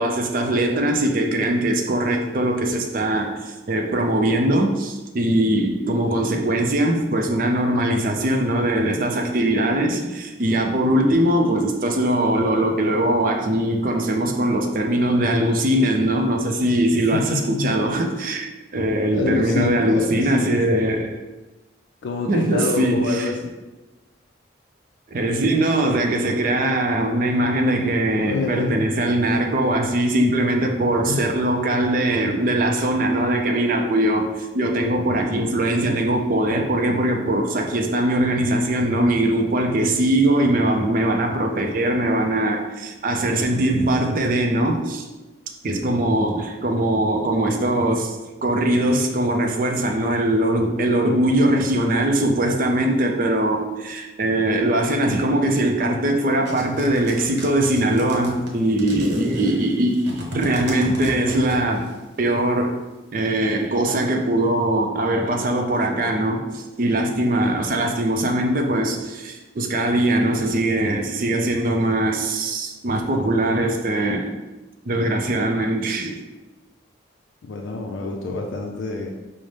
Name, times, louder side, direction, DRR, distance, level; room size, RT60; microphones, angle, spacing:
voice 1, 0.0-21.2 22.3-23.3 25.1-45.1 45.6-61.9 62.2-62.7 63.1-74.3 74.9-76.2, right 1 dB, 45° right, 3 dB, 0.4 m, -21 dB
voice 2, 17.0-17.7 19.1-20.6 22.0-23.5 28.1-29.1 31.0-31.3 77.4-79.1, left 3 dB, 80° left, 1 dB, 0.4 m, -27 dB
sound 1, 56.4-61.9, right 1 dB, 70° right, 0.8 m, -32 dB
5.2 x 2.0 x 3.2 m, 1.1 s
head